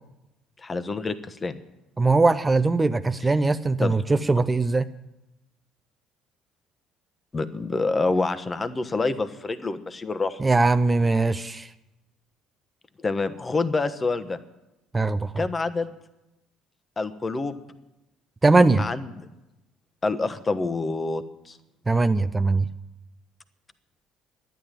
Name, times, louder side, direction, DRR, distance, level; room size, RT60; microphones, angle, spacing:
voice 1, 0.6-1.5 3.8-3.9 7.3-10.4 13.0-14.4 15.4-15.9 17.0-17.6 18.8-19.3 20.0-21.6, left 3 dB, 25° left, 12 dB, 1.2 m, -27 dB
voice 2, 2.0-4.8 10.4-11.7 14.9-15.4 18.4-18.9 21.9-22.7, right 3 dB, 20° right, 11 dB, 0.5 m, -21 dB
11.0 x 10.5 x 9.2 m, 0.96 s
figure-of-eight pair, 55°, 0 cm